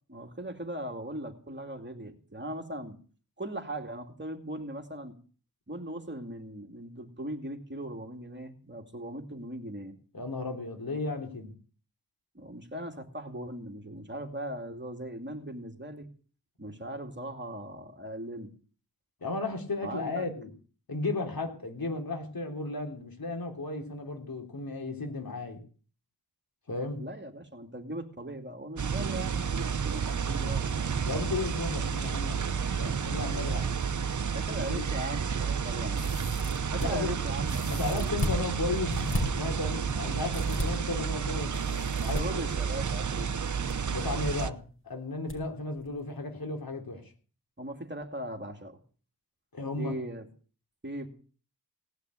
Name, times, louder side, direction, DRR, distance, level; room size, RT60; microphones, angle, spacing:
voice 1, 0.1-3.0 3.4-5.2 5.7-9.9 12.3-16.1 16.6-18.5 19.8-20.3 27.0-30.9 34.3-36.1 36.7-38.1 42.1-43.4 47.6-48.8 49.8-50.2 50.8-51.1, right 1 dB, 30° right, 4 dB, 2.7 m, -39 dB
voice 2, 10.1-11.5 19.2-20.5 20.9-25.6 26.7-27.0 31.0-33.7 34.7-34.9 36.8-37.1 37.7-38.9 39.3-42.4 43.9-44.6 44.8-47.0 49.5-49.9, left 3 dB, 70° left, 3 dB, 3.6 m, -34 dB
sound 1, 28.8-44.5, right 6 dB, 50° right, 0.9 m, -31 dB
sound 2, 35.9-36.9 37.4-38.4 38.9-39.2 40.3-40.7 41.5-42.2 43.3-43.7 44.0-44.1 45.3-45.4 45.8-45.9, left 1 dB, 35° left, 5.7 m, -34 dB
18.5 x 6.5 x 9.7 m, 0.41 s
cardioid pair, 55°, 37 cm